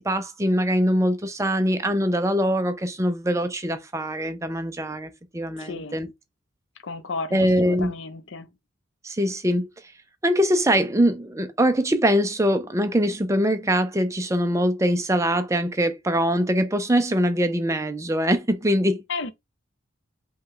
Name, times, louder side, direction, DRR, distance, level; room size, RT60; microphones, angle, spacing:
voice 1, 0.0-6.1 7.3-7.9 9.0-9.7 10.2-19.0, equal, 15° right, 0.5 m, -23 dB
voice 2, 5.6-6.0 6.8-8.5 19.1-19.3, left 4 dB, 65° left, 0.7 m, -33 dB
5.2 x 2.3 x 3.8 m
head